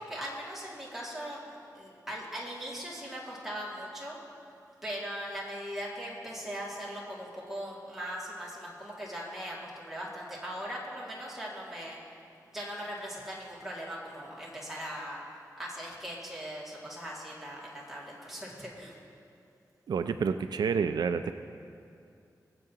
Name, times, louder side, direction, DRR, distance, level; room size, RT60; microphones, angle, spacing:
voice 1, 0.0-4.2 4.8-12.0 12.5-15.2 15.6-19.0, equal, 5° right, -6 dB, 2.2 m, -40 dB
voice 2, 19.9-21.3, right 6 dB, 85° right, 9 dB, 0.4 m, -29 dB
21.0 x 7.7 x 2.9 m, 2.5 s
wide cardioid pair, 135°, 7 cm